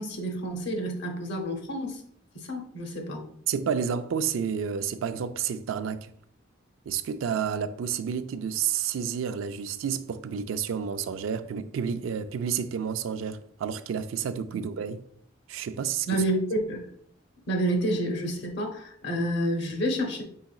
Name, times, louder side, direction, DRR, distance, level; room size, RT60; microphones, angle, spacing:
voice 1, 0.0-2.0 2.3-3.2 14.5-14.6 16.1-16.9 17.5-20.2, right 1 dB, 60° left, 0.9 m, -29 dB
voice 2, 3.5-6.1 6.9-15.0 15.5-16.2, right 7 dB, 85° right, 0.3 m, -30 dB
4.8 x 4.0 x 2.3 m
head